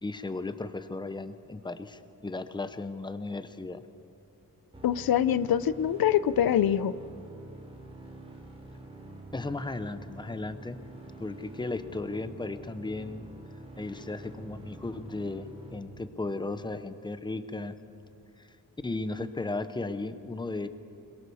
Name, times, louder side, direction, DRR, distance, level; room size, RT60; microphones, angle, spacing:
voice 1, 0.0-3.8 9.3-10.8 11.2-13.3 13.8-17.8 18.4-18.5 18.8-20.7, left 3 dB, 15° left, 11 dB, 0.8 m, -35 dB
sound 1, 4.7-16.7, right 2 dB, 15° right, 3.2 m, -47 dB
voice 2, 4.8-6.9, left 10 dB, 90° left, 15 dB, 0.7 m, -24 dB
22.0 x 22.0 x 7.0 m, 2.7 s
wide cardioid pair, 125°, 35 cm